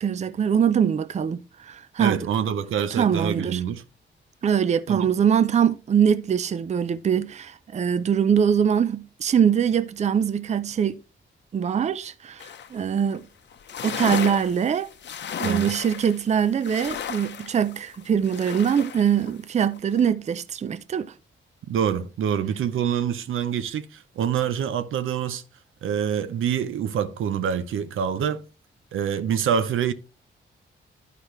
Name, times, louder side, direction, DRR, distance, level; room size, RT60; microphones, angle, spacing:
voice 1, 0.0-2.2 2.9-3.6 4.4-11.0 11.5-13.2 13.8-14.9 15.4-21.1, right 8 dB, 35° right, 0.4 m, -23 dB
voice 2, 2.0-3.8 4.9-5.1 15.4-15.7 21.7-25.4 25.8-28.4 28.9-29.9, right 8 dB, 85° right, 0.7 m, -26 dB
Water waves, 12.4-12.8 13.1-13.2 13.5-19.3 19.7-20.1, left 8 dB, 60° left, 0.7 m, -34 dB
11.5 x 5.0 x 3.1 m
cardioid pair, 100°, 20 cm